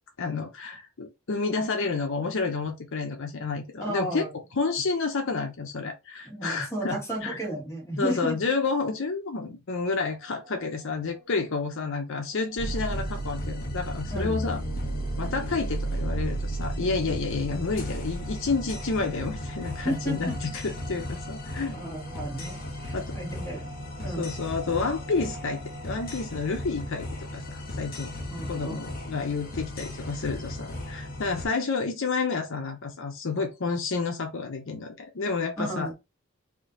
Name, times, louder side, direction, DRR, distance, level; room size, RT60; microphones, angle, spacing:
voice 1, 0.2-4.2 4.5-7.4 8.0-14.6 15.2-21.7 22.9-23.1 24.2-27.1 27.3-28.1 28.5-35.9, left 4 dB, 60° left, 0.6 m, -30 dB
voice 2, 3.8-4.3 6.2-8.4 14.1-14.3 19.8-20.4 21.7-24.3 28.3-28.8 35.6-35.9, right 1 dB, 15° left, 1.6 m, -33 dB
sound 1, 9.8-27.1, right 2 dB, 80° right, 1.6 m, -51 dB
sound 2, 12.6-31.5, equal, 40° left, 1.2 m, -34 dB
3.6 x 2.6 x 3.8 m
head